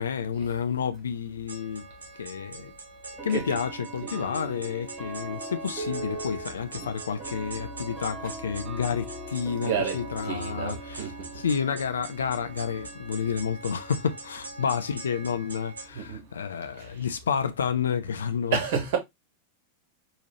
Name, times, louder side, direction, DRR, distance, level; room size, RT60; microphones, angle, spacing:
voice 1, 0.0-1.9 2.2-2.7 3.2-18.6, left 7 dB, 70° left, 0.4 m, -30 dB
sound 1, 0.9-1.0 2.1-2.2 3.2-16.4, right 3 dB, 15° right, 1.1 m, -42 dB
sound 2, 1.5-15.9, right 3 dB, 70° right, 1.0 m, -43 dB
voice 2, 9.6-11.1 15.9-16.2 18.5-19.0, right 7 dB, 50° right, 1.4 m, -30 dB
4.3 x 2.8 x 2.8 m
figure-of-eight pair, 90°, 0 cm